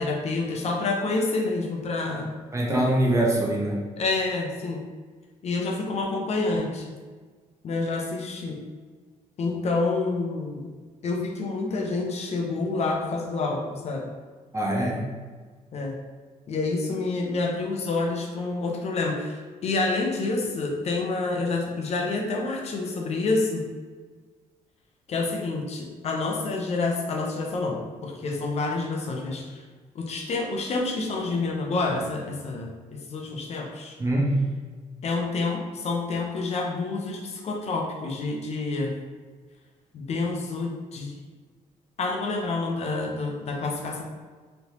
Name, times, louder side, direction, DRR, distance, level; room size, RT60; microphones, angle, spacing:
voice 1, 0.0-2.3 4.0-4.8 5.4-6.9 7.6-8.6 9.4-10.7 11.0-14.1 15.7-16.0 16.5-23.6 25.1-29.6 29.9-32.7 33.1-34.0 35.0-38.9 39.9-41.1 42.0-44.0, left 3 dB, 50° left, 1 dB, 0.6 m, -28 dB
voice 2, 2.5-3.8 14.5-15.1 34.0-34.4, right 1 dB, 20° right, -2 dB, 0.7 m, -23 dB
3.2 x 2.9 x 2.8 m, 1.5 s
cardioid pair, 105°, 14 cm